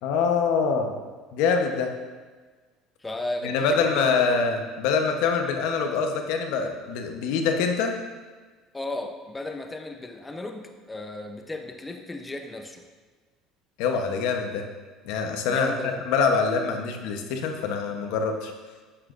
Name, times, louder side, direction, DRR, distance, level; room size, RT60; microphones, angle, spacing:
voice 1, 0.0-0.9 1.3-1.9 3.4-7.9 13.8-14.6 15.0-18.5, left 5 dB, 75° left, 4 dB, 1.0 m, -25 dB
voice 2, 3.0-4.3 8.7-12.8 15.5-16.0, left 2 dB, 15° left, 5 dB, 0.7 m, -35 dB
10.0 x 8.1 x 2.6 m, 1.4 s
supercardioid pair, 105°, 0 cm